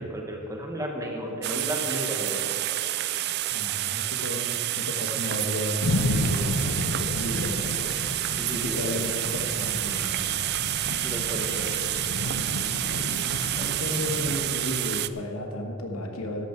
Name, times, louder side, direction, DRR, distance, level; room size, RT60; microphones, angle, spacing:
voice 1, 0.0-2.6 8.4-9.1 11.0-11.9 13.6-13.7, equal, 15° right, 0 dB, 1.3 m, -34 dB
sound 1, 1.4-15.1, right 14 dB, 50° right, 0.3 m, -29 dB
voice 2, 3.5-10.2 10.8-11.1 13.2-16.5, left 1 dB, 70° left, 2 dB, 1.5 m, -34 dB
sound 2, 5.8-14.4, left 1 dB, 85° left, 0.9 m, -32 dB
13.0 x 11.5 x 4.6 m, 3.0 s
head